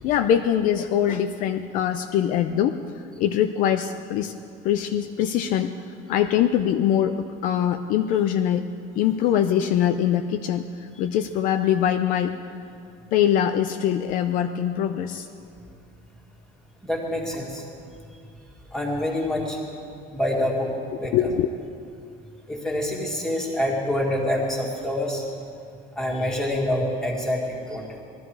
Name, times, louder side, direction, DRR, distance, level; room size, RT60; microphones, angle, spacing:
voice 1, 0.0-2.8 3.2-4.3 4.6-8.7 9.0-12.4 13.1-15.3 21.1-21.5, left 10 dB, 50° left, 7 dB, 0.5 m, -23 dB
voice 2, 16.8-17.6 18.7-19.6 20.1-20.7 21.0-21.1 22.5-25.2 26.0-28.0, left 1 dB, 5° left, -2 dB, 2.1 m, -26 dB
20.5 x 13.0 x 4.7 m, 2.5 s
cardioid pair, 170°, 18 cm